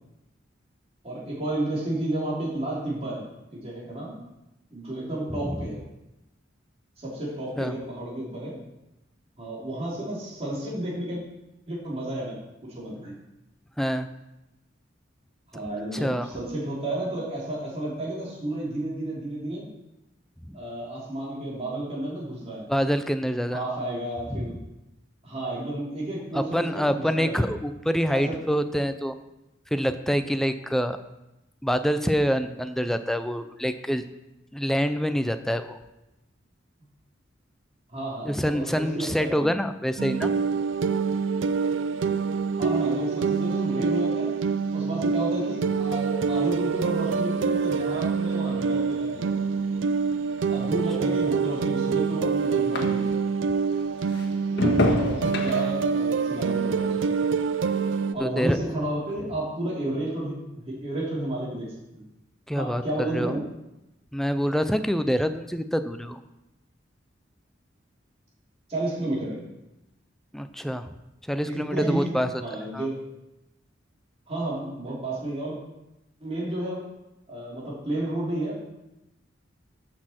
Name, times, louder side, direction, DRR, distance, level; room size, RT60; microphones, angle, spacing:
voice 1, 1.0-3.2 3.5-4.2 4.7-5.8 7.0-8.6 9.4-11.2 11.7-13.1 15.5-19.7 20.5-22.7 23.5-24.6 25.2-27.5 28.1-28.4 37.9-39.5 42.5-44.3 44.7-49.3 50.5-53.1 54.5-57.1 58.1-62.0 62.5-63.5 68.7-69.4 71.4-72.1 72.4-73.0 74.3-75.6 76.2-76.9 77.3-78.7, right 1 dB, 35° right, -6 dB, 3.1 m, -32 dB
voice 2, 13.8-14.1 16.0-16.3 20.5-20.6 22.7-23.8 24.3-24.5 26.5-29.1 29.7-31.0 31.6-34.0 34.5-35.7 38.2-40.3 51.0-51.2 58.2-58.6 62.5-63.3 64.1-66.2 70.3-70.9 71.3-72.3 72.7-72.9, equal, ahead, 9 dB, 0.5 m, -26 dB
sound 1, 40.0-58.1, right 5 dB, 75° right, 0.4 m, -26 dB
sound 2, 46.6-53.4 53.7-58.3 58.6-59.1, left 2 dB, 65° left, 1.5 m, -33 dB
14.0 x 6.4 x 4.4 m, 0.93 s
head